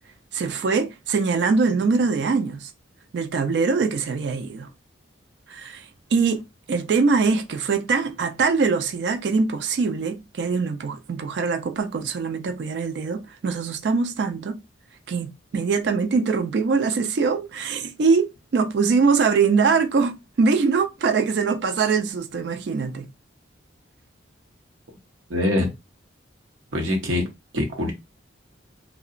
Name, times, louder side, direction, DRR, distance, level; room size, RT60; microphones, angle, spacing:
voice 1, 0.3-2.7 3.1-4.7 5.5-6.4 6.7-14.6 15.1-23.1, right 4 dB, 60° right, 0.3 m, -23 dB
voice 2, 25.3-25.7 26.7-27.3 27.5-27.9, left 1 dB, 85° right, 0.8 m, -23 dB
2.8 x 2.1 x 2.4 m
head